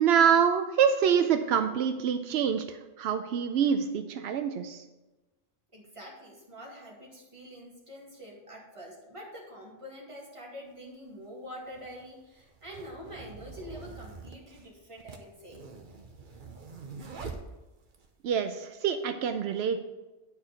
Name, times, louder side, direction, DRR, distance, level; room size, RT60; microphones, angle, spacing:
voice 1, 0.0-4.8 18.2-19.8, right 7 dB, 85° right, 8 dB, 0.8 m, -26 dB
voice 2, 5.7-15.6, equal, 30° right, -3 dB, 2.2 m, -46 dB
sound 1, 10.7-10.8 11.7-18.1, right 4 dB, 55° right, 1.0 m, -45 dB
9.4 x 4.7 x 5.7 m, 1.1 s
omnidirectional pair, 1.0 m